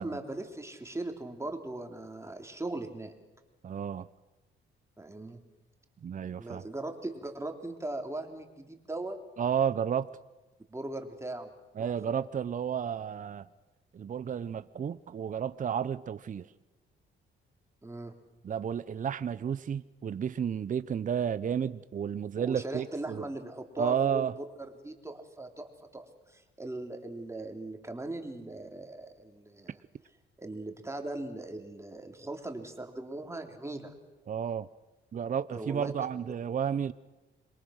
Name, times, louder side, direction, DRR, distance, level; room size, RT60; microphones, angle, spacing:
voice 1, 0.0-3.1 5.0-5.4 6.4-9.2 10.7-11.5 12.1-12.2 17.8-18.1 22.3-29.8 30.4-33.9 35.5-36.1, right 2 dB, 15° right, 3.3 m, -39 dB
voice 2, 3.6-4.1 6.0-6.6 9.4-10.1 11.8-13.5 13.9-16.5 18.4-23.2 23.8-24.3 34.3-34.7 35.1-36.9, right 8 dB, 40° right, 0.7 m, -32 dB
27.0 x 22.5 x 6.5 m
cardioid pair, 90°, 20 cm